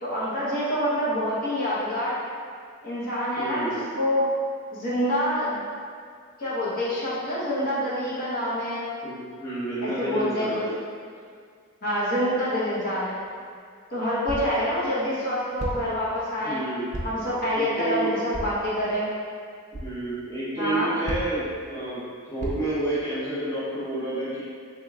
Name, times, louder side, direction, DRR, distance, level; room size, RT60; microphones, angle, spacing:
voice 1, 0.0-2.1 2.8-3.7 3.9-4.2 4.7-5.6 6.4-8.9 9.8-10.6 11.8-13.2 13.9-16.6 17.0-19.1 20.6-20.9, equal, 45° left, -9 dB, 0.9 m, -26 dB
voice 2, 3.4-3.9 9.0-10.8 16.4-17.0 17.5-18.1 19.7-24.4, right 2 dB, 15° left, -12 dB, 0.8 m, -30 dB
sound 1, 13.2-13.3 14.3-14.6 15.6-16.0 16.9-17.3 18.3-18.7 19.7-19.9 21.1-21.5 22.4-22.8, right 1 dB, 35° right, 0.4 m, -33 dB
3.7 x 3.5 x 2.3 m, 2.1 s
head